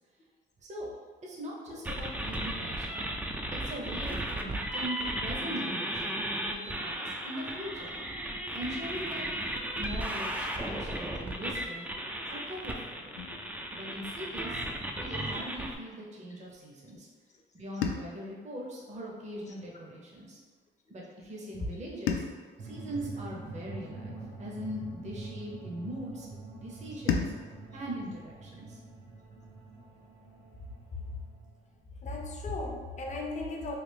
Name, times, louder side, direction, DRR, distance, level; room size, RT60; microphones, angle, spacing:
voice 1, 1.2-3.0 3.6-6.2 6.5-8.0 8.5-9.3 9.8-11.8 12.3-13.2 13.7-14.6 15.0-17.1 17.5-20.4 20.9-22.2 22.6-26.3 26.6-27.3 27.7-28.8, equal, 35° right, -3 dB, 0.7 m, -41 dB
sound 1, 1.8-15.7, right 1 dB, 10° right, 0.3 m, -35 dB
sound 2, 13.2-15.4 17.8-20.1 22.1-24.5 27.1-29.6, left 6 dB, 80° left, 0.4 m, -39 dB
sound 3, 22.6-31.8, right 3 dB, 60° right, 1.1 m, -45 dB
voice 2, 32.0-33.8, left 2 dB, 35° left, 1 dB, 0.6 m, -36 dB
3.2 x 2.4 x 3.3 m, 1.5 s
cardioid pair, 90°, 20 cm